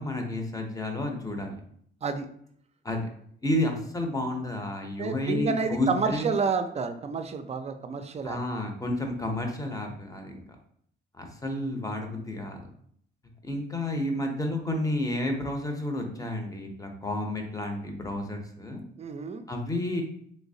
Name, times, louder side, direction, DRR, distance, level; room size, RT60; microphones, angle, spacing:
voice 1, 0.0-1.6 2.8-3.0 3.4-6.3 8.2-10.4 11.1-12.6 13.4-18.8 19.5-20.0, left 1 dB, 15° left, 4 dB, 0.7 m, -31 dB
voice 2, 5.0-8.4 19.0-19.4, right 5 dB, 35° right, 8 dB, 0.4 m, -29 dB
3.2 x 2.9 x 2.7 m, 0.66 s
cardioid pair, 90°, 20 cm